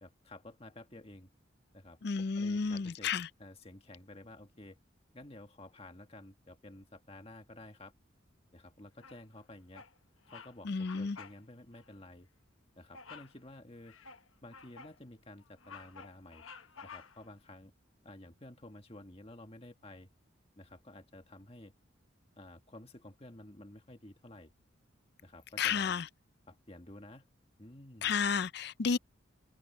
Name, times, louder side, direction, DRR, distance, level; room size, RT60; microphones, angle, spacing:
voice 1, 0.0-1.3 1.7-4.8 5.1-7.9 8.5-9.8 10.3-12.3 12.8-14.0 14.4-16.4 16.8-17.7 18.0-20.1 20.6-21.7 22.4-24.5 25.2-26.0 26.5-27.3 27.6-28.2, left 1 dB, 30° left, 1.8 m, -52 dB
voice 2, 2.0-3.3 10.6-11.2 25.6-26.1 28.0-29.0, left 5 dB, 55° left, 0.5 m, -32 dB
Bird vocalization bird call bird song, 9.0-9.4 9.7-10.0 10.3-10.5 10.8-11.4 11.7-11.9 12.9-13.4 13.9-15.0 15.4-17.3, left 5 dB, 90° left, 1.3 m, -51 dB
head